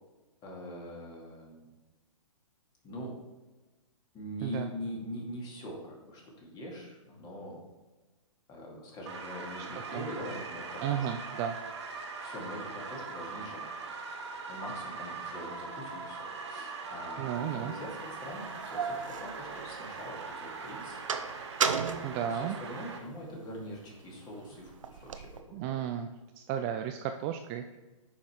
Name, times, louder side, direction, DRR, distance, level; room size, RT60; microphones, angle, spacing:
voice 1, 0.4-1.8 2.8-3.2 4.1-7.6 8.5-11.1 12.2-13.7 14.5-21.0 22.3-25.6, equal, 25° left, -1 dB, 2.4 m, -43 dB
sound 1, 9.1-23.0, right 4 dB, 55° right, 1.7 m, -41 dB
voice 2, 10.8-11.6 17.2-17.7 22.0-22.6 25.5-26.1 26.4-27.8, right 9 dB, 25° right, 7 dB, 0.3 m, -33 dB
sound 2, 17.6-17.7 18.3-20.2 20.5-23.2 23.6-25.4, right 6 dB, 70° right, 0.8 m, -35 dB
8.9 x 5.5 x 4.6 m, 1.2 s
figure-of-eight pair, 125°, 17 cm